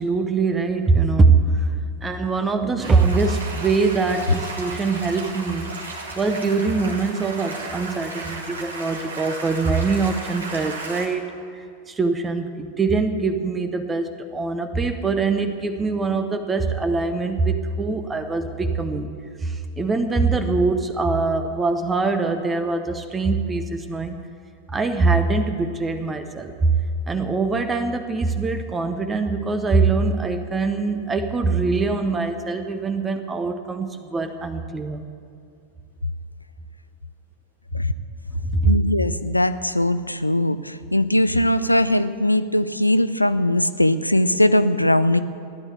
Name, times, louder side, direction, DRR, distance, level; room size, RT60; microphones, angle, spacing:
voice 1, 0.0-1.7 2.0-5.8 6.2-11.3 11.5-19.1 19.4-24.2 24.7-26.7 27.1-35.1 38.5-38.7, right 4 dB, 15° right, 8 dB, 1.0 m, -23 dB
sound 1, 2.8-11.1, right 2 dB, 75° right, 2.2 m, -35 dB
voice 2, 38.6-45.2, left 1 dB, 85° left, 13 dB, 0.5 m, -20 dB
15.5 x 11.0 x 8.0 m, 2.4 s
figure-of-eight pair, 90°, 0 cm